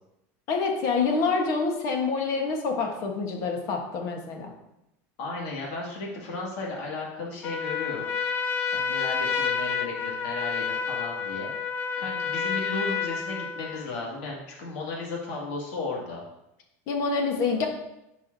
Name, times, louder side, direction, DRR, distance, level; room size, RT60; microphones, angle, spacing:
voice 1, 0.5-4.5 16.9-17.7, left 4 dB, 50° left, 3 dB, 1.3 m, -26 dB
voice 2, 5.2-8.1 8.7-11.5 12.0-16.2, left 3 dB, 80° left, -3 dB, 2.3 m, -35 dB
Trumpet, 7.4-13.9, left 6 dB, 30° left, 0.5 m, -29 dB
10.5 x 4.8 x 2.8 m, 0.86 s
cardioid pair, 150°, 7 cm